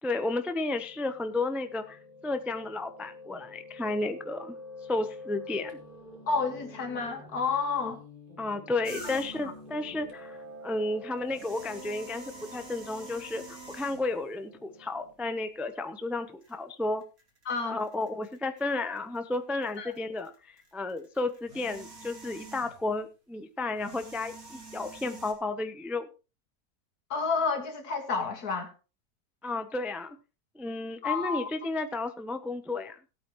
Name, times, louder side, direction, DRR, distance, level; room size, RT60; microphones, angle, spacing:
voice 1, 0.0-4.5 4.9-5.8 8.4-10.4 10.6-17.0 17.7-26.1 29.4-30.2 30.5-33.0, left 2 dB, ahead, 0.5 m, -32 dB
Piano, 0.7-15.1, left 1 dB, 30° right, 3.5 m, -48 dB
voice 2, 6.3-8.0 9.4-9.5 17.5-17.8 19.8-19.9 27.1-28.7 31.0-31.5, left 5 dB, 70° left, 2.4 m, -30 dB
sound 1, 8.8-9.6 11.2-14.2 15.1-15.2 16.4-16.5 17.0-19.4 19.6-23.0 23.7-25.3, right 3 dB, 60° right, 3.3 m, -47 dB
18.0 x 8.5 x 3.1 m
omnidirectional pair, 1.6 m